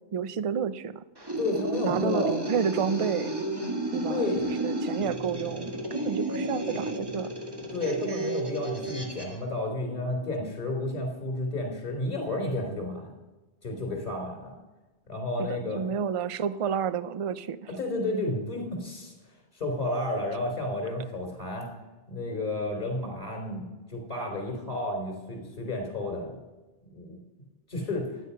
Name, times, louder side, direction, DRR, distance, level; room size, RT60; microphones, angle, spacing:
voice 1, 0.1-1.0 1.8-3.3 3.9-4.3 4.6-7.3 15.4-15.5 15.7-17.6, right 7 dB, 55° right, 15 dB, 0.3 m, -30 dB
sound 1, 1.2-9.4, right 1 dB, 20° right, 1.5 m, -32 dB
voice 2, 1.4-2.3 4.1-4.6 7.7-13.1 13.6-14.6 15.1-15.9 17.8-19.1 19.5-21.7 22.1-26.3 26.8-27.2 27.7-28.2, left 2 dB, 45° left, 2 dB, 3.6 m, -31 dB
12.0 x 9.2 x 5.6 m, 1.2 s
omnidirectional pair, 1.2 m